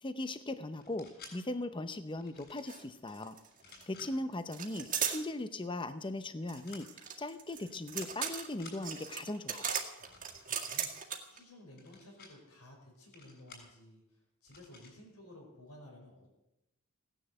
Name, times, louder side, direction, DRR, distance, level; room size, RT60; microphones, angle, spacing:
voice 1, 0.0-3.4 3.9-9.7, left 2 dB, 20° left, 11 dB, 0.7 m, -39 dB
sound 1, 0.8-1.3 2.2-2.7 3.5-4.1 6.6-6.8 7.6-7.8 8.1-8.8 10.0-10.7 11.7-12.3 13.1-13.7 14.5-14.9, left 4 dB, 50° left, 6.6 m, -54 dB
sound 2, 2.7-2.8 3.1-3.8 4.5-5.2 6.5-11.4, right 8 dB, 40° right, 1.9 m, -37 dB
voice 2, 3.6-4.1 10.0-10.9 11.3-14.0 14.4-16.3, left 1 dB, 80° left, -2 dB, 5.4 m, -55 dB
17.5 x 10.0 x 7.9 m, 0.89 s
head